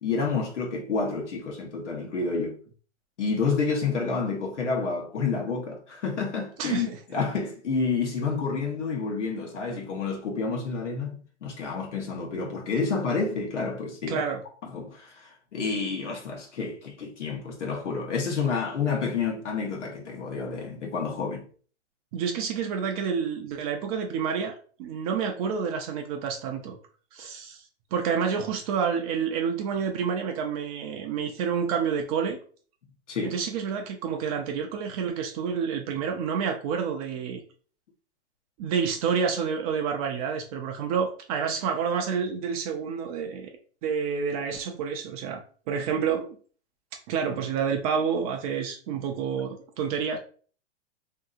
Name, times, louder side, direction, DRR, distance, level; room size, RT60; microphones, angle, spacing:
voice 1, 0.0-2.6 3.2-14.2 14.7-21.5 33.1-33.3, left 4 dB, 90° left, 1.0 m, -29 dB
voice 2, 6.6-7.0 14.1-14.4 22.1-26.8 27.1-32.4 33.2-37.4 38.6-43.5 43.8-45.4 45.7-46.4 47.1-50.2, right 6 dB, 35° right, 0.4 m, -29 dB
2.7 x 2.7 x 2.4 m
hypercardioid pair, 120°, 35 cm